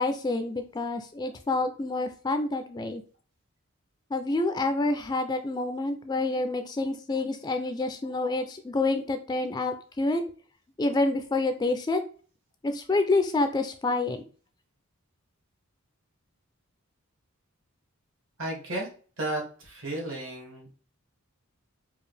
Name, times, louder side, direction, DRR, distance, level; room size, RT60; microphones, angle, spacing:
voice 1, 0.0-3.0 4.1-10.2 10.8-12.0 12.6-14.2, left 2 dB, 20° left, 7 dB, 0.3 m, -28 dB
voice 2, 18.4-18.9 19.2-20.7, right 1 dB, 60° right, -1 dB, 1.6 m, -33 dB
4.5 x 2.4 x 3.2 m, 0.39 s
head